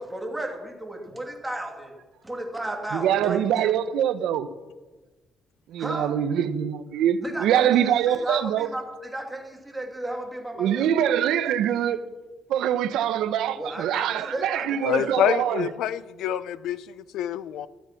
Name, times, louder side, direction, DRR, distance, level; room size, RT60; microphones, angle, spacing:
voice 1, 0.0-1.9 2.2-3.7 5.8-6.1 7.2-10.9 13.6-15.4, right 1 dB, 5° right, 2.5 m, -34 dB
voice 2, 2.9-4.5 5.7-8.7 10.6-12.0 12.5-15.7, right 10 dB, 90° right, 1.0 m, -24 dB
voice 3, 14.8-17.7, left 10 dB, 85° left, 0.7 m, -27 dB
14.5 x 14.0 x 6.0 m
cardioid pair, 175°, 0 cm